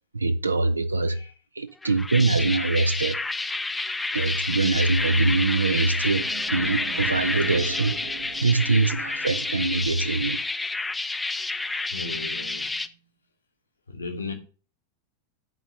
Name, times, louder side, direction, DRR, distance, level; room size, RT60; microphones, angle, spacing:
voice 1, 0.1-1.2 1.6-3.2 4.1-8.0 8.4-10.4, right 3 dB, 80° right, 0.4 m, -23 dB
sound 1, 1.8-12.9, left 3 dB, 10° left, 0.4 m, -29 dB
sound 2, 5.7-10.4, right 8 dB, 60° right, 1.0 m, -42 dB
voice 2, 11.9-12.8 13.9-14.3, left 3 dB, 75° left, 1.2 m, -36 dB
9.8 x 3.9 x 5.2 m
figure-of-eight pair, 90°, 0 cm